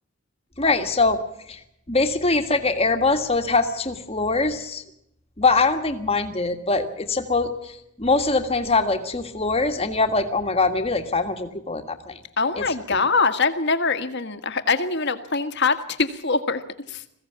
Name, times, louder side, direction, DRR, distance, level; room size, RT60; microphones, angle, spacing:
voice 1, 0.6-1.2 1.5-1.6 1.9-4.8 5.4-7.7 8.0-12.2 12.6-12.7 12.9-13.0, left 3 dB, 25° left, 7 dB, 1.7 m, -23 dB
voice 2, 12.4-16.6 16.9-17.0, left 4 dB, 50° left, 9 dB, 1.6 m, -23 dB
22.0 x 16.0 x 8.7 m, 0.77 s
head